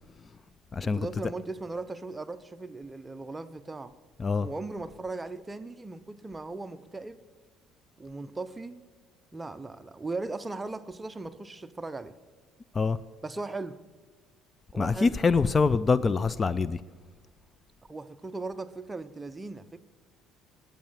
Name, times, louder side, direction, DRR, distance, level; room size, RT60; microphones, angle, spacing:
voice 1, 0.8-3.9 4.4-7.2 8.0-8.8 9.3-12.1 13.2-13.8 14.7-15.2 17.9-19.8, right 3 dB, 15° right, 0.7 m, -38 dB
voice 2, 14.8-16.8, left 4 dB, 30° left, 0.4 m, -24 dB
11.0 x 8.5 x 7.3 m
supercardioid pair, 85°, 0 cm